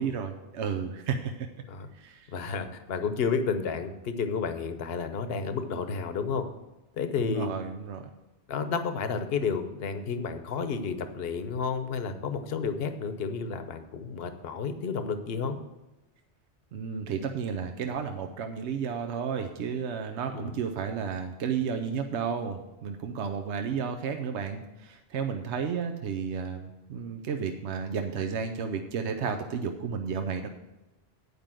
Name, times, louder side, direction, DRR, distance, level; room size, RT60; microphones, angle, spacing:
voice 1, 0.0-1.5 2.0-2.3 7.2-8.0 16.7-30.5, right 6 dB, 80° right, 6 dB, 1.0 m, -32 dB
voice 2, 2.3-6.5 7.0-7.5 8.5-15.6 20.3-20.5, left 5 dB, 60° left, 9 dB, 1.0 m, -31 dB
9.6 x 5.2 x 7.4 m, 1.0 s
omnidirectional pair, 1.2 m